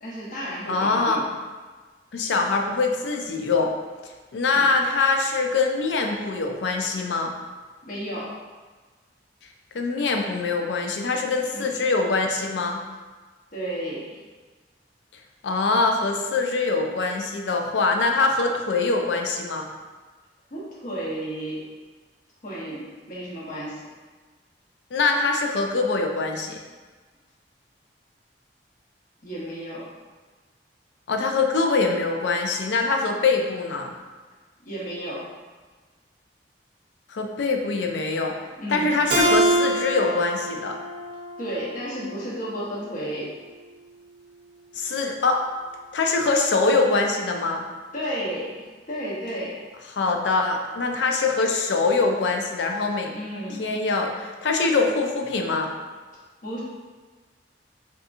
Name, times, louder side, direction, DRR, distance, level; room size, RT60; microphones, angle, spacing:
voice 1, 0.0-1.2 4.5-4.7 7.8-8.3 11.5-11.7 13.5-14.2 20.5-21.7 22.4-23.9 29.2-29.8 34.6-35.3 38.6-38.9 41.4-43.3 47.9-49.6 53.1-53.8 56.4-56.6, equal, 50° left, -6 dB, 0.9 m, -32 dB
voice 2, 0.7-1.2 2.1-3.7 4.3-7.3 9.7-12.8 15.4-19.7 24.9-26.6 31.1-33.9 37.1-38.4 38.7-40.8 44.7-45.4 45.9-47.6 49.9-53.1 53.6-55.7, left 3 dB, 80° left, 3 dB, 0.4 m, -23 dB
Keyboard (musical), 39.1-42.3, right 1 dB, 70° right, 0.6 m, -25 dB
3.5 x 2.8 x 2.5 m, 1.4 s
head